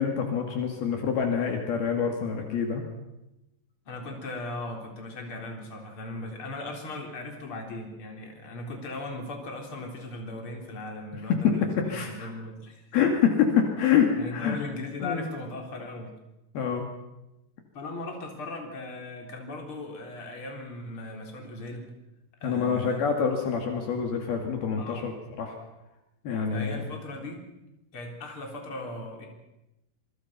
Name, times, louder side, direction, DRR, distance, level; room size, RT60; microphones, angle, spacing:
voice 1, 0.0-2.8 11.3-12.3 12.9-14.6 15.0-15.3 16.5-16.8 22.4-25.6 26.2-26.8, left 7 dB, 65° left, 3 dB, 4.0 m, -26 dB
voice 2, 3.8-12.9 14.2-16.2 17.7-21.9 22.4-23.0 24.8-25.1 26.5-27.4 27.9-29.3, left 2 dB, 30° left, 2 dB, 4.4 m, -38 dB
26.5 x 24.5 x 5.8 m, 0.93 s
omnidirectional pair, 4.8 m